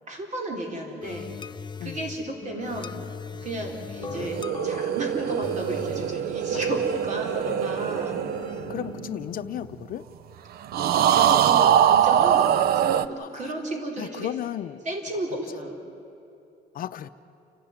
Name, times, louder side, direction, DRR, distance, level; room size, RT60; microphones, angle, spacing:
voice 1, 0.1-1.3 1.8-3.1 3.4-8.2 10.9-14.3 14.8-15.8, right 1 dB, 45° right, 2 dB, 4.4 m, -33 dB
sound 1, 1.0-9.7, left 6 dB, 30° left, 0.5 m, -40 dB
sound 2, 4.0-9.6 10.7-13.1, right 10 dB, 65° right, 0.6 m, -23 dB
voice 2, 8.7-10.1 13.2-13.5 14.0-14.8 16.7-17.1, left 11 dB, 55° left, 11 dB, 0.7 m, -35 dB
29.5 x 12.5 x 9.7 m, 2.8 s
cardioid pair, 110°, 17 cm